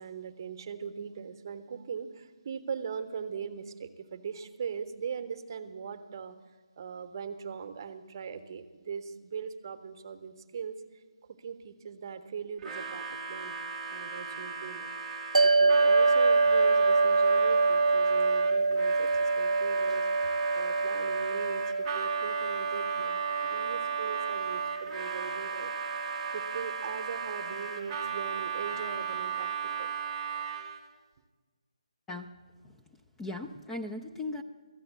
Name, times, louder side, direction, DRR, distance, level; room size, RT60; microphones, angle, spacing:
voice 1, 0.0-6.4 6.8-11.0 11.3-13.6 13.9-14.9 15.4-25.7 26.3-29.9, right 6 dB, 35° right, 9 dB, 0.8 m, -40 dB
Harmonica, 12.6-30.9, right 7 dB, 10° right, 0.8 m, -36 dB
sound 1, 15.3-27.8, right 3 dB, 85° right, 0.4 m, -27 dB
voice 2, 32.1-32.4 32.6-32.8 33.2-34.4, left 2 dB, 5° left, 3 dB, 0.3 m, -38 dB
13.5 x 7.9 x 8.0 m, 1.4 s
figure-of-eight pair, 155°, 3 cm